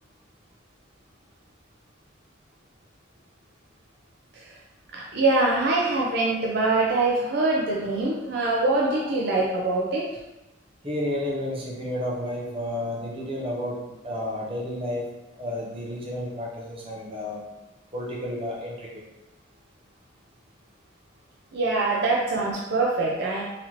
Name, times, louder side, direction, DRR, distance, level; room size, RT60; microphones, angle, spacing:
voice 1, 4.9-10.1 21.5-23.4, right 2 dB, 55° right, -3 dB, 0.5 m, -24 dB
voice 2, 10.8-15.0 15.4-17.4 17.9-19.0, left 1 dB, 30° right, -5 dB, 0.8 m, -31 dB
3.8 x 2.8 x 3.0 m, 1.0 s
head